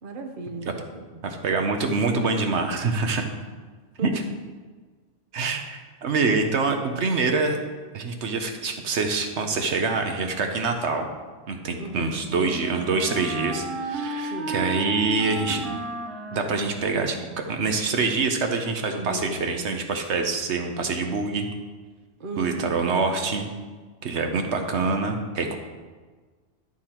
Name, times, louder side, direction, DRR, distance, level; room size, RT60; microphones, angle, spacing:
voice 1, 0.0-1.3 4.0-4.2 11.8-12.2 14.2-14.6 18.9-19.2 22.2-23.1, right 2 dB, 55° right, 4 dB, 1.0 m, -36 dB
voice 2, 1.2-3.2 4.0-4.1 5.3-7.6 7.9-11.1 11.5-15.8 16.3-21.5 22.4-23.5 24.0-25.6, right 4 dB, 80° right, 5 dB, 1.2 m, -25 dB
Wind instrument woodwind instrument, 11.7-17.5, right 2 dB, ahead, 1.7 m, -34 dB
11.5 x 6.1 x 4.4 m, 1.4 s
omnidirectional pair, 1.1 m